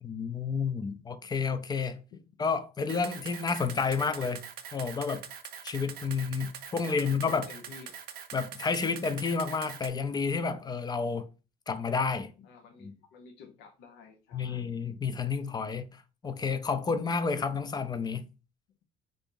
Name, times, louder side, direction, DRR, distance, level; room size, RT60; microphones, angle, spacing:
voice 1, 0.0-2.0 2.4-5.2 5.6-7.5 8.3-11.3 11.7-12.3 12.8-12.9 14.3-18.2, left 5 dB, 25° left, 0.4 m, -30 dB
Camera, 2.9-9.9, right 8 dB, 65° right, 0.5 m, -43 dB
voice 2, 6.1-8.0 10.5-10.6 12.4-14.8, left 5 dB, 90° left, 0.6 m, -52 dB
2.7 x 2.5 x 3.6 m
cardioid pair, 110°, 17 cm